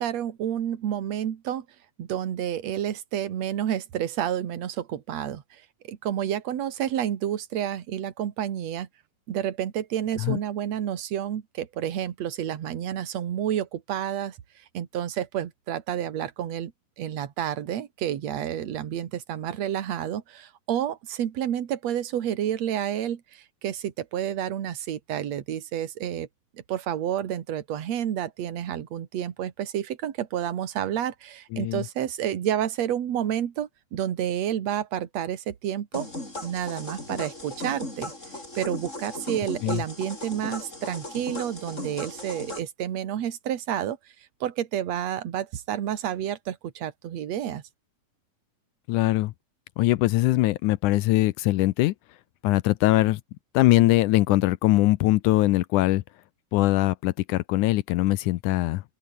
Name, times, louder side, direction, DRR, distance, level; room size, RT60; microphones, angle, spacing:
voice 1, 0.0-1.7 2.0-8.9 9.3-14.4 14.7-16.7 17.0-26.3 26.5-36.1 36.4-38.1 38.5-44.0 44.4-47.6, right 10 dB, 55° right, 2.7 m, -30 dB
voice 2, 31.5-31.8 39.6-39.8 48.9-49.3 49.8-51.9 52.4-53.2 53.5-56.0 56.5-58.8, left 17 dB, 75° left, 2.0 m, -22 dB
sound 1, 35.9-42.6, left 2 dB, 20° left, 6.9 m, -37 dB
open air
omnidirectional pair, 3.9 m